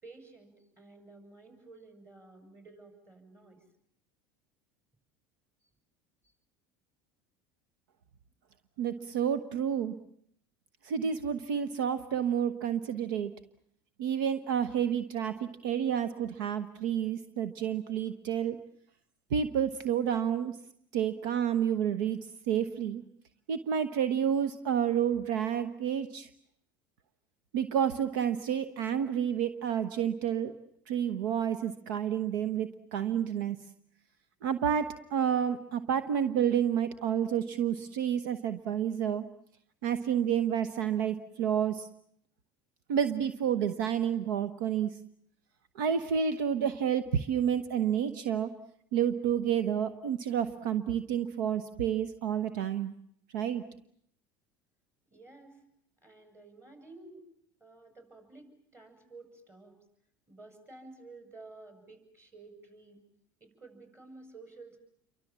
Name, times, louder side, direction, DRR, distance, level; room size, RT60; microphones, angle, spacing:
voice 1, 0.0-3.6 55.1-55.6 56.0-57.2 57.6-59.7 60.3-63.0 63.4-64.8, right 3 dB, 25° right, 5 dB, 6.7 m, -52 dB
voice 2, 8.8-9.9 10.8-13.3 14.0-18.6 19.3-20.5 20.9-22.2 22.5-23.0 23.5-26.3 27.5-30.5 30.9-33.6 34.4-39.2 39.8-41.9 42.9-44.9 45.7-48.5 48.9-52.9 53.3-53.6, right 8 dB, 75° right, 12 dB, 1.0 m, -30 dB
29.0 x 24.0 x 7.4 m, 0.69 s
hypercardioid pair, 80°, 11 cm